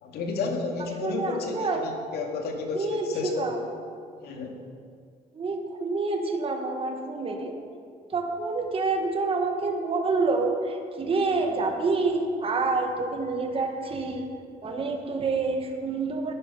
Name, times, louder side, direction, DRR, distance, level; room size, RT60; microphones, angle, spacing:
voice 1, 0.0-3.5 4.2-4.6, left 4 dB, 70° left, 2 dB, 2.2 m, -31 dB
voice 2, 0.8-1.9 2.7-3.6 5.3-7.5 8.1-14.3 14.6-16.3, right 3 dB, 35° right, 4 dB, 1.6 m, -28 dB
13.5 x 10.0 x 5.7 m, 2.3 s
cardioid pair, 110°, 17 cm